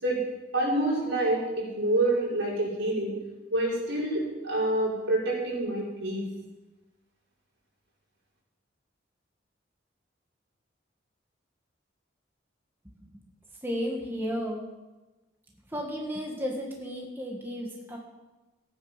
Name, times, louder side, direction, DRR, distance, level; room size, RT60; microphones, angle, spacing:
voice 1, 0.5-3.1 3.5-6.3, right 1 dB, 80° right, -5 dB, 5.5 m, -27 dB
voice 2, 13.6-14.6 15.7-18.0, equal, 10° right, -1 dB, 1.7 m, -33 dB
16.0 x 9.3 x 5.7 m, 1.1 s
head